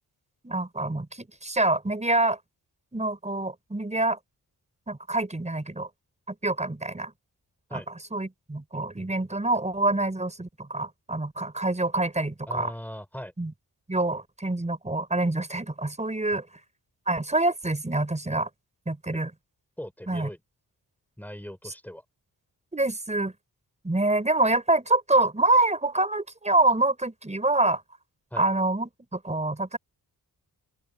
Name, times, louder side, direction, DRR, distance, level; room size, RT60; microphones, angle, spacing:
voice 1, 0.4-2.4 2.9-4.2 4.9-5.9 6.3-7.1 7.7-7.8 8.1-12.7 13.4-13.5 13.9-16.4 17.1-18.5 18.9-19.3 20.1-20.3 22.7-23.3 23.8-27.8 28.4-29.8, right 2 dB, 20° right, 5.7 m, -26 dB
voice 2, 12.5-13.3 16.3-16.4 19.8-20.4 21.2-22.0 28.3-28.4, equal, 5° left, 4.6 m, -39 dB
open air
wide cardioid pair, 165°, 38 cm